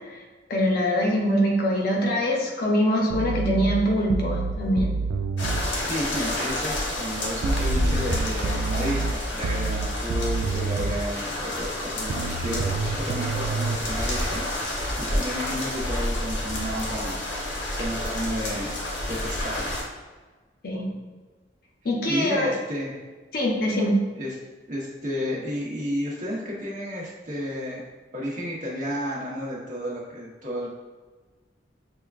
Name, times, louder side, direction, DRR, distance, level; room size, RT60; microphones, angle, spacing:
voice 1, 0.5-4.9 20.6-20.9 21.8-22.5 23.3-24.0, equal, 55° left, -1 dB, 0.7 m, -23 dB
sound 1, 3.1-5.7 7.4-11.0 12.1-13.8, right 3 dB, 90° right, 0.3 m, -28 dB
sound 2, 5.4-19.8, left 1 dB, 80° left, 1.0 m, -29 dB
voice 2, 5.9-18.7 19.1-19.7 22.1-23.0 24.2-24.3 24.7-27.8 28.1-30.7, equal, 45° right, -5 dB, 1.0 m, -32 dB
6.5 x 2.3 x 2.4 m, 1.3 s
head